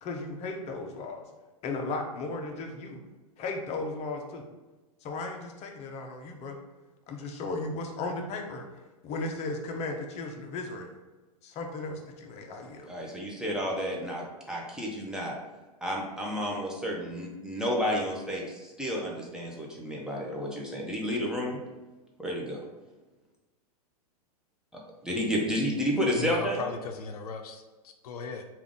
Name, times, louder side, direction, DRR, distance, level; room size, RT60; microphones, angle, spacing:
voice 1, 0.0-1.2 1.6-3.0 3.4-4.4 5.0-6.6 7.1-8.7 9.0-10.9 11.4-12.9, left 3 dB, 35° left, 3 dB, 0.6 m, -35 dB
voice 2, 12.9-15.4 15.8-21.6 22.2-22.6 25.0-26.7, equal, 5° right, -3 dB, 0.6 m, -31 dB
voice 3, 26.2-28.4, left 4 dB, 70° left, 5 dB, 0.5 m, -37 dB
3.5 x 2.4 x 3.6 m, 1.2 s
hypercardioid pair, 110°, 20 cm